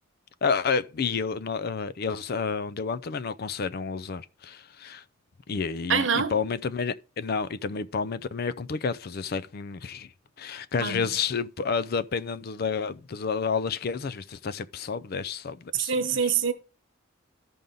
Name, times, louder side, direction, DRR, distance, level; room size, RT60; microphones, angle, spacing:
voice 1, 0.4-5.0 5.5-10.1 10.4-16.3, left 5 dB, 50° left, 0.4 m, -30 dB
voice 2, 5.9-6.3 10.8-11.0 15.7-16.5, right 6 dB, 60° right, 1.1 m, -25 dB
13.5 x 5.4 x 3.8 m
head